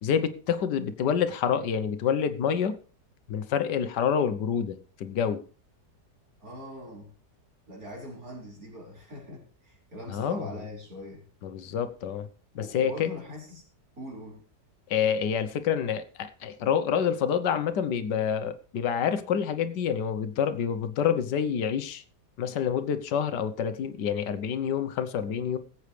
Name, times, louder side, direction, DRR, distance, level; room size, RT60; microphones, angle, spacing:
voice 1, 0.0-2.7 3.3-5.4 10.1-10.5 11.4-12.3 12.5-13.1 14.9-22.0 22.4-25.6, left 7 dB, 85° left, 1.6 m, -27 dB
voice 2, 6.4-7.1 7.7-11.2 12.6-13.6 14.0-14.4, equal, 60° right, 5.1 m, -42 dB
20.5 x 8.1 x 3.3 m
omnidirectional pair, 1.8 m